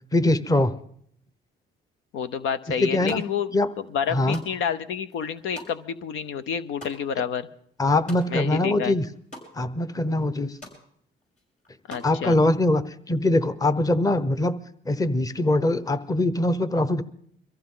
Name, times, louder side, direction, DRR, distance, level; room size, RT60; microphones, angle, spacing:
voice 1, 0.1-0.7 2.8-3.2 3.5-3.7 4.1-4.4 7.8-9.0 9.5-10.6 12.0-14.6 14.8-17.0, left 1 dB, 20° left, 14 dB, 0.9 m, -22 dB
voice 2, 2.1-3.5 3.8-7.5 8.3-9.0 11.9-12.4, left 7 dB, 85° left, 12 dB, 0.8 m, -29 dB
sound 1, 2.8-3.5 3.9-8.6 8.9-9.5 9.9-10.0 10.2-10.8 11.2-12.1, left 1 dB, 40° left, 6.3 m, -45 dB
23.5 x 15.0 x 3.9 m, 0.64 s
cardioid pair, 90°, 20 cm